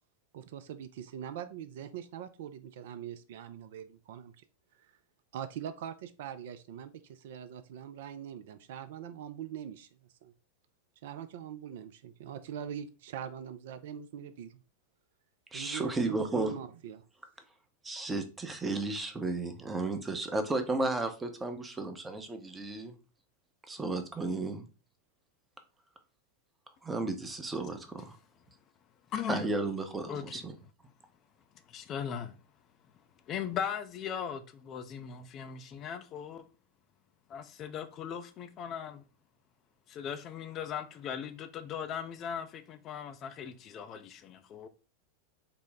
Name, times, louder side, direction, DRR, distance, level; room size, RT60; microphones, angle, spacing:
voice 1, 0.3-4.3 5.3-9.9 10.2-10.3 11.0-14.6 15.5-17.0, right 9 dB, 55° right, 0.3 m, -42 dB
voice 2, 15.5-16.5 17.8-22.9 23.7-24.7 26.8-28.2 29.3-30.5, right 2 dB, 10° right, 0.6 m, -33 dB
voice 3, 29.1-29.4 30.1-30.4 31.7-32.3 33.3-36.4 37.3-39.0 39.9-44.7, left 8 dB, 30° left, 0.4 m, -38 dB
3.8 x 2.0 x 3.8 m
figure-of-eight pair, 90°, 0 cm